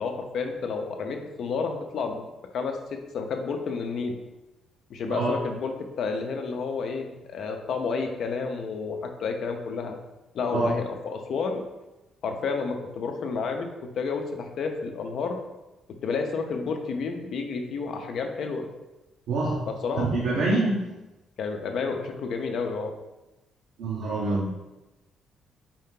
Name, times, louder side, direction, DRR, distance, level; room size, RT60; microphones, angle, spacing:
voice 1, 0.0-2.3 2.5-2.8 3.1-4.2 4.9-5.7 6.0-10.0 10.3-11.6 12.2-15.4 16.0-18.7 19.7-20.1 21.4-22.9, left 4 dB, 65° left, 4 dB, 0.6 m, -30 dB
voice 2, 20.0-20.8 23.8-24.5, right 3 dB, 80° right, -4 dB, 0.8 m, -25 dB
4.7 x 2.7 x 3.7 m, 1.0 s
cardioid pair, 90°, 0 cm